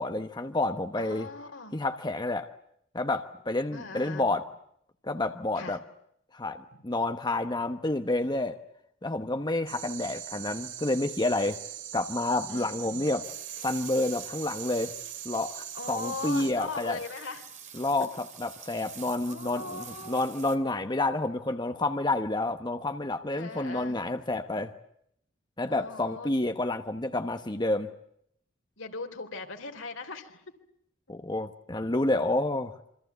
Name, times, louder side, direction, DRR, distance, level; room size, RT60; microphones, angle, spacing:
voice 1, 0.0-1.3 1.7-2.5 2.9-4.4 5.0-5.8 6.3-8.6 9.0-11.6 11.9-13.2 13.6-14.9 15.2-17.0 17.7-24.7 25.6-27.9 31.1-32.7, left 2 dB, 20° left, 8 dB, 1.1 m, -29 dB
voice 2, 1.0-1.8 3.7-4.4 5.5-5.8 6.7-6.8 12.5-13.1 15.7-17.5 19.3-20.3 23.3-24.1 25.7-26.3 28.8-30.4, left 3 dB, 80° left, 5 dB, 3.6 m, -39 dB
sound 1, 9.7-16.5, right 10 dB, 80° right, 5.7 m, -41 dB
sound 2, 13.2-20.6, right 8 dB, 40° right, 2.9 m, -47 dB
27.5 x 25.5 x 8.2 m, 0.73 s
head